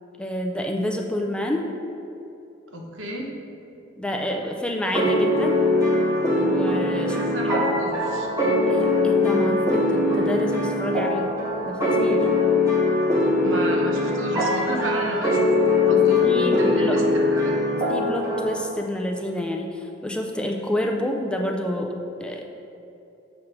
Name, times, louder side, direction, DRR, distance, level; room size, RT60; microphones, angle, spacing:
voice 1, 0.2-1.7 4.0-5.6 6.3-7.2 7.6-7.8 8.7-11.3 11.7-12.3 15.9-17.0 17.9-22.0 22.2-22.4, left 1 dB, 5° left, 1 dB, 0.3 m, -28 dB
voice 2, 2.7-3.3 7.0-8.3 13.4-15.5 15.9-17.6, right 1 dB, 75° right, 0 dB, 1.0 m, -31 dB
sound 1, 4.9-18.7, left 2 dB, 15° right, 1.3 m, -21 dB
7.1 x 3.2 x 6.0 m, 2.8 s
head